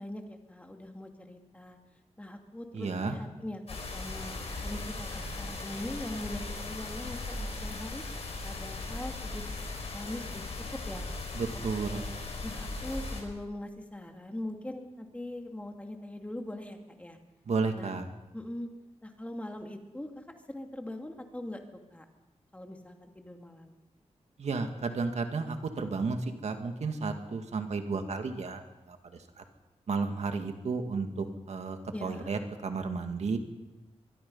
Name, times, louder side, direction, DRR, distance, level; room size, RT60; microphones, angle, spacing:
voice 1, 0.0-1.8 2.2-8.0 8.4-9.5 9.9-11.0 11.8-12.1 12.4-17.2 17.7-17.9 18.3-18.7 19.0-21.6 21.9-22.0 22.5-23.7 31.9-32.3, left 1 dB, 10° left, 3 dB, 2.5 m, -41 dB
voice 2, 2.7-3.2 11.3-12.0 17.5-18.1 24.4-28.6 28.9-29.0 29.4-29.5 29.9-33.4, right 4 dB, 70° right, 6 dB, 2.1 m, -32 dB
sound 1, 3.7-13.2, left 2 dB, 60° left, 5.7 m, -38 dB
23.5 x 22.5 x 5.6 m, 1.0 s
wide cardioid pair, 135°, 12 cm